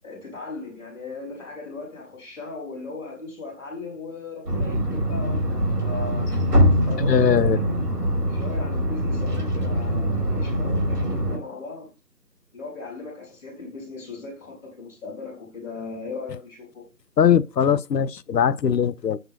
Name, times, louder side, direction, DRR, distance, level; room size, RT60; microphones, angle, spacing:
voice 1, 0.0-6.3 6.8-7.6 8.1-11.9 12.5-16.8, left 3 dB, 10° left, 4.7 m, -37 dB
sound 1, 4.5-11.4, equal, 75° right, 2.5 m, -23 dB
voice 2, 7.0-7.6 17.2-19.2, left 8 dB, 85° left, 0.6 m, -20 dB
7.9 x 7.9 x 2.6 m
figure-of-eight pair, 165°, 48 cm